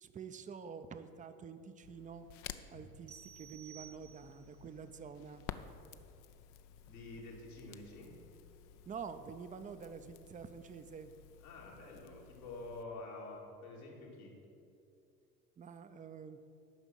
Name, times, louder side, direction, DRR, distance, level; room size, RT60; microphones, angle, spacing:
voice 1, 0.0-2.3 2.7-5.4 8.9-11.1 15.6-16.4, right 6 dB, 20° right, 10 dB, 0.5 m, -48 dB
Crackle, 1.8-12.8, left 10 dB, 50° left, 0.6 m, -53 dB
sound 1, 3.1-4.6, right 9 dB, 85° right, 1.1 m, -55 dB
voice 2, 6.9-8.1 11.4-14.4, left 2 dB, 75° left, -3 dB, 2.3 m, -48 dB
9.2 x 6.0 x 7.4 m, 2.6 s
figure-of-eight pair, 60°, 43 cm